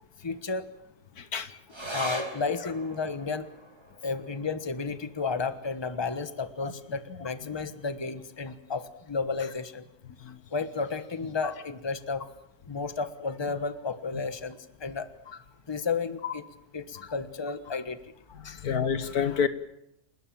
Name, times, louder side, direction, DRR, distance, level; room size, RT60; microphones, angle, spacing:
voice 1, 0.2-0.7 1.9-3.5 4.0-9.8 10.5-12.3 12.6-16.4 16.7-18.0 18.4-18.6, left 4 dB, 20° left, 11 dB, 1.2 m, -33 dB
voice 2, 1.2-1.6 6.6-6.7 10.2-10.4 16.2-16.3 18.5-19.5, left 7 dB, 80° left, 12 dB, 1.9 m, -28 dB
sound 1, 1.7-8.5 8.8-8.9 9.2-9.9 10.5-10.6, right 1 dB, 15° right, 3.0 m, -42 dB
29.0 x 20.0 x 7.6 m, 0.81 s
omnidirectional pair, 1.6 m